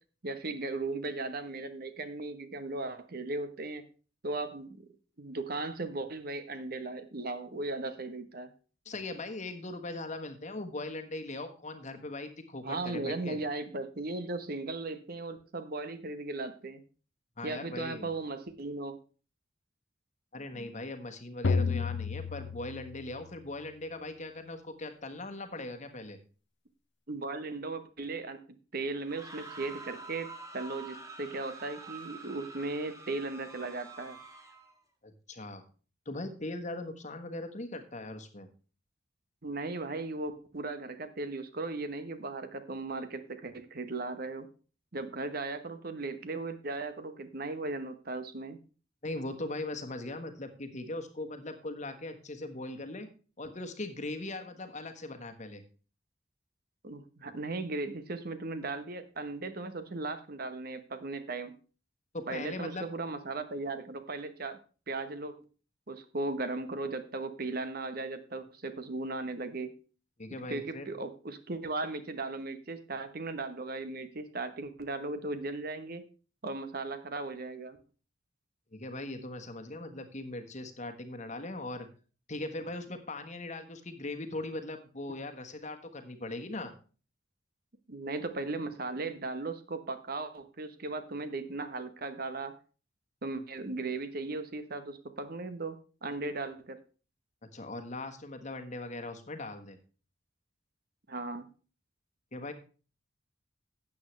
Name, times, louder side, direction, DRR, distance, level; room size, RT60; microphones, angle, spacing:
voice 1, 0.2-3.8 4.2-4.9 5.2-8.5 12.6-16.8 17.4-19.0 27.1-28.4 28.7-34.2 39.4-44.5 44.9-48.6 56.8-61.6 62.3-64.6 64.9-65.3 65.9-69.7 70.5-76.0 76.4-77.8 87.9-92.5 93.2-96.8 101.1-101.5, right 3 dB, 50° right, 10 dB, 1.1 m, -37 dB
voice 2, 8.8-13.4 17.4-18.1 20.3-26.2 35.0-35.6 36.0-38.5 49.0-53.1 53.4-55.6 62.1-62.9 70.2-70.9 78.7-81.9 82.3-86.7 97.4-99.8 102.3-102.5, left 2 dB, 40° left, 6 dB, 1.4 m, -40 dB
sound 1, 21.4-23.4, left 4 dB, 65° left, 0.6 m, -31 dB
sound 2, 29.0-34.7, right 3 dB, 15° right, 1.5 m, -47 dB
13.0 x 8.6 x 3.3 m, 0.37 s
head